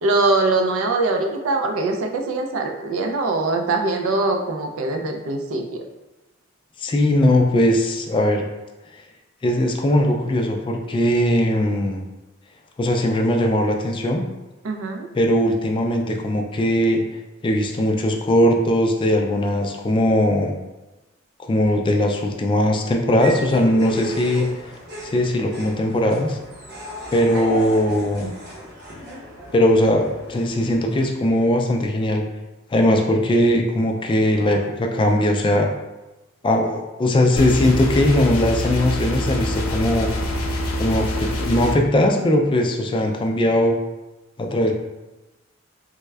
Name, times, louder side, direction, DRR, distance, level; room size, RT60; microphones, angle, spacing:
voice 1, 0.0-5.8 14.6-15.1 27.3-27.6, right 3 dB, 80° right, 4 dB, 0.4 m, -22 dB
voice 2, 6.8-8.4 9.4-12.0 12.8-14.2 15.1-17.0 17.4-20.5 21.4-24.5 25.0-26.4 27.1-28.3 29.5-32.2 32.7-35.7 36.4-40.1 40.8-43.8 44.4-44.7, left 1 dB, 25° left, 3 dB, 0.3 m, -19 dB
sound 1, 23.2-31.0, right 1 dB, 55° right, 0.8 m, -36 dB
sound 2, 37.4-41.8, equal, 80° left, 0.5 m, -25 dB
3.4 x 2.2 x 3.2 m, 1.1 s
head